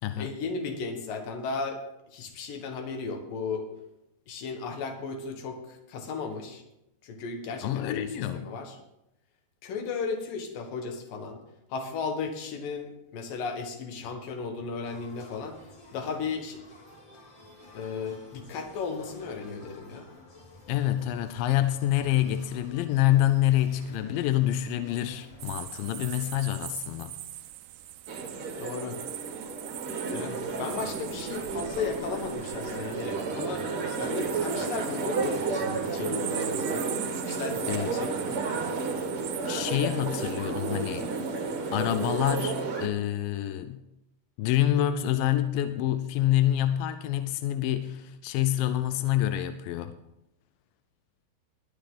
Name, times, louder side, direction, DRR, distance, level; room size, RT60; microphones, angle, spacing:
voice 1, 0.2-1.8 2.1-3.6 4.3-6.6 7.0-8.8 9.6-11.4 11.7-15.6 15.9-16.6 17.7-20.1 28.5-29.0 30.1-36.9 37.3-38.5, left 4 dB, 65° left, 5 dB, 3.0 m, -35 dB
voice 2, 7.6-8.5 20.7-27.2 37.7-37.9 39.5-41.1 41.7-42.6 42.8-43.8 44.4-50.0, left 12 dB, 80° left, 10 dB, 2.1 m, -27 dB
sound 1, 14.8-26.4, left 2 dB, 35° left, 2.7 m, -51 dB
sound 2, 25.4-42.6, right 14 dB, 80° right, 2.0 m, -42 dB
sound 3, 28.1-42.9, right 4 dB, 55° right, 1.6 m, -32 dB
20.5 x 10.5 x 3.8 m, 0.88 s
omnidirectional pair, 4.6 m